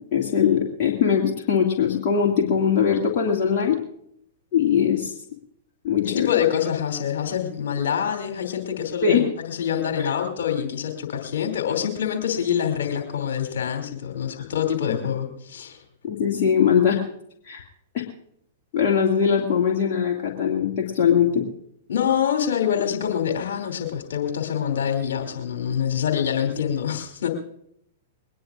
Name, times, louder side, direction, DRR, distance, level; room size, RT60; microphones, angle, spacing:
voice 1, 0.1-3.8 4.5-5.1 5.8-6.3 9.0-9.2 10.0-10.1 14.4-14.5 16.0-17.0 17.5-17.6 17.9-18.0 18.7-21.4, left 7 dB, 45° left, -1 dB, 2.2 m, -21 dB
voice 2, 6.0-15.8 21.9-27.3, left 8 dB, 65° left, 4 dB, 2.8 m, -25 dB
21.5 x 19.5 x 2.5 m, 0.72 s
figure-of-eight pair, 105°, 0 cm